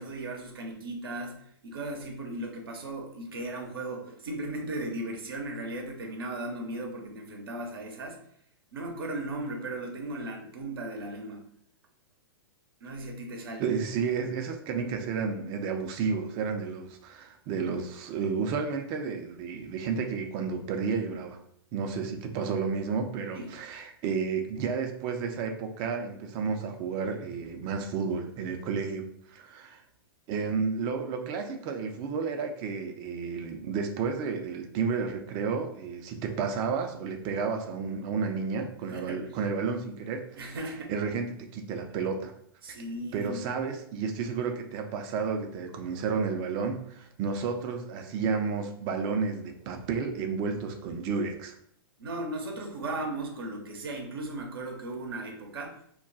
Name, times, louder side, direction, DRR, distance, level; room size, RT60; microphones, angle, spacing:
voice 1, 0.0-8.2 8.7-11.4 12.8-13.7 23.3-23.6 38.9-39.3 40.4-41.0 42.6-43.4 52.0-55.7, right 2 dB, 75° right, 1 dB, 0.7 m, -37 dB
voice 2, 13.6-21.4 21.7-29.8 30.3-40.5 40.9-42.3 42.7-42.8 43.1-51.5, right 5 dB, 35° right, 4 dB, 0.5 m, -31 dB
2.3 x 2.2 x 3.8 m, 0.67 s
hypercardioid pair, 115°, 12 cm